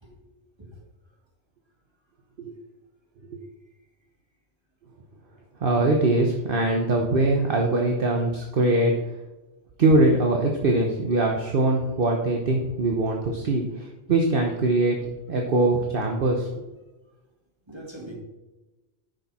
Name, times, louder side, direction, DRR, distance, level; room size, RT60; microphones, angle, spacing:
voice 1, 5.6-9.0 9.8-15.0 15.3-16.6, right 2 dB, 50° right, 1 dB, 1.2 m, -22 dB
voice 2, 17.7-18.1, right 1 dB, 20° right, -2 dB, 2.5 m, -41 dB
10.5 x 6.6 x 4.2 m, 1.1 s
omnidirectional pair, 1.2 m